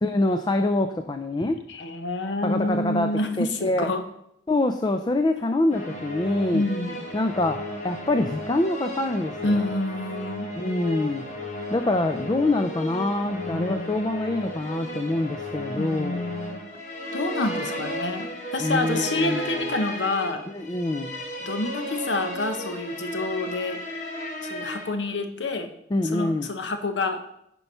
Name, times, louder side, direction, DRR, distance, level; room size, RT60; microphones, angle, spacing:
voice 1, 0.0-1.6 2.4-3.1 3.4-3.9 4.5-6.6 7.1-7.6 7.8-9.7 10.6-11.2 11.7-16.3 18.6-19.4 20.5-21.2 25.9-26.5, left 2 dB, 25° left, 7 dB, 0.4 m, -25 dB
voice 2, 1.7-4.0 6.5-7.0 9.4-10.5 13.2-14.0 15.8-16.6 17.1-20.4 21.4-23.8 24.4-25.7 26.1-27.2, left 2 dB, 80° left, 7 dB, 1.0 m, -28 dB
sound 1, 5.7-24.9, left 1 dB, 40° left, 1.4 m, -34 dB
9.8 x 4.6 x 5.5 m, 0.77 s
head